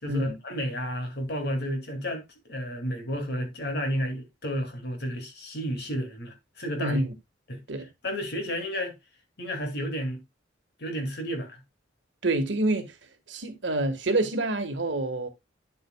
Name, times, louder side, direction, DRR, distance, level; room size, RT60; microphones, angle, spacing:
voice 1, 0.0-7.0 7.5-7.6 8.0-8.9 9.4-10.2 10.8-11.6, equal, 60° left, 2.4 m, -32 dB
voice 2, 6.8-7.1 7.7-7.9 12.2-12.9 13.3-15.3, right 2 dB, 70° right, 1.5 m, -27 dB
9.3 x 7.8 x 2.2 m
head